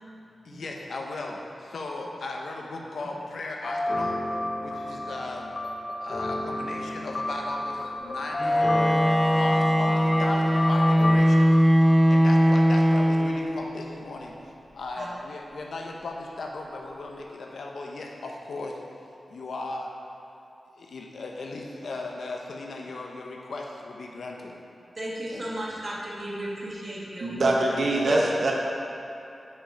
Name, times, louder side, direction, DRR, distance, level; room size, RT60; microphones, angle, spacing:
voice 1, 0.4-4.3 4.6-5.5 6.0-9.0 9.3-14.3 14.7-18.8 19.3-19.9 20.8-24.6 25.3-25.5 27.7-28.2, left 2 dB, 80° left, 0 dB, 0.8 m, -37 dB
sound 1, 3.6-11.2, left 1 dB, 50° left, 0.6 m, -29 dB
Bowed string instrument, 8.4-13.8, equal, 5° right, 0.5 m, -20 dB
voice 2, 25.0-27.3 28.1-28.3, equal, 40° right, -4 dB, 1.3 m, -33 dB
voice 3, 27.2-28.5, right 2 dB, 65° right, -1 dB, 0.7 m, -23 dB
6.0 x 5.2 x 5.0 m, 2.8 s
wide cardioid pair, 85°, 0 cm